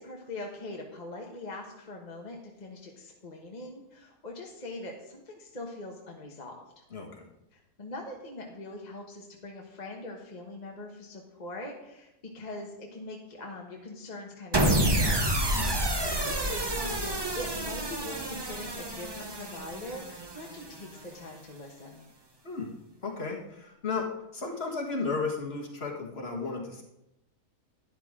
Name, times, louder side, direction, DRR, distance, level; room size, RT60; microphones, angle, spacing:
voice 1, 0.0-6.8 7.5-15.3 16.0-22.1, left 2 dB, 35° left, 0 dB, 1.4 m, -42 dB
voice 2, 6.9-7.2 15.6-15.8 22.4-22.7 23.0-26.8, left 4 dB, 50° left, 0 dB, 2.0 m, -34 dB
sound 1, 14.5-20.9, right 1 dB, 20° right, 0.9 m, -29 dB
12.0 x 10.5 x 3.7 m, 0.89 s
omnidirectional pair, 1.4 m